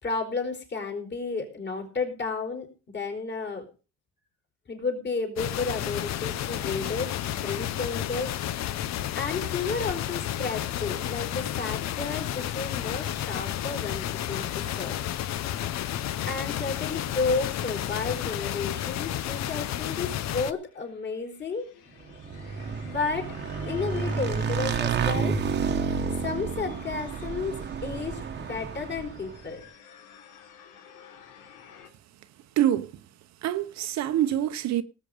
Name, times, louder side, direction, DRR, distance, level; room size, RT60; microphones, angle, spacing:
voice 1, 0.0-3.7 4.7-8.3 9.1-15.4 16.3-21.6 22.8-23.3 23.7-25.4 26.2-29.6, left 4 dB, 35° left, 4.5 m, -32 dB
sound 1, 5.4-20.5, left 12 dB, 55° left, 0.9 m, -31 dB
sound 2, 20.6-31.9, left 7 dB, 75° left, 3.2 m, -51 dB
Motorcycle / Engine, 22.1-29.4, right 6 dB, 35° right, 1.2 m, -30 dB
voice 2, 32.6-32.9 33.4-34.8, right 11 dB, 55° right, 1.0 m, -25 dB
18.5 x 8.1 x 5.0 m
cardioid pair, 145°, 32 cm